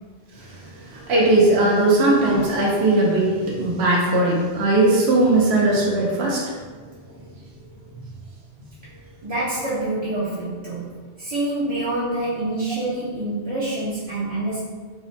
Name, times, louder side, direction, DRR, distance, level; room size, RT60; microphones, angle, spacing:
voice 1, 1.1-3.3 3.6-6.4, right 2 dB, 85° right, -4 dB, 1.0 m, -18 dB
voice 2, 9.2-14.6, right 2 dB, 35° right, -9 dB, 0.5 m, -26 dB
4.6 x 2.1 x 2.6 m, 1.5 s
omnidirectional pair, 1.1 m